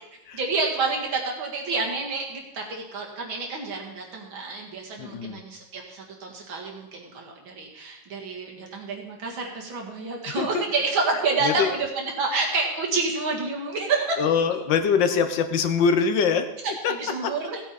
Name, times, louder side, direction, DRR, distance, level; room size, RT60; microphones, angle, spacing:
voice 1, 0.3-14.2 16.6-17.6, right 3 dB, 80° right, 0 dB, 2.7 m, -28 dB
voice 2, 5.0-5.4 10.3-10.6 11.4-11.7 14.2-16.5 16.8-16.9 17.2-17.3, left 6 dB, 70° left, 9 dB, 1.5 m, -23 dB
16.0 x 8.3 x 4.2 m, 0.92 s
omnidirectional pair, 2.1 m